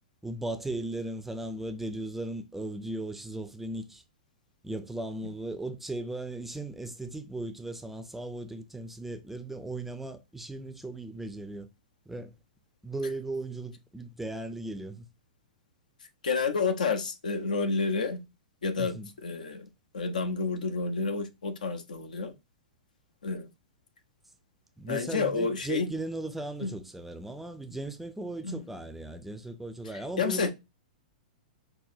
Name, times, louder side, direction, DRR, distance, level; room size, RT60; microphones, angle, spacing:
voice 1, 0.2-4.0 4.6-11.7 12.1-12.3 12.8-15.1 18.8-19.1 24.8-30.5, right 2 dB, 5° right, 0.4 m, -37 dB
voice 2, 16.2-18.2 18.6-19.7 19.9-22.3 23.2-23.5 24.9-25.9 26.6-26.7 28.4-28.6 30.2-30.5, left 4 dB, 75° left, 0.7 m, -30 dB
5.5 x 2.2 x 2.6 m
figure-of-eight pair, 105°, 4 cm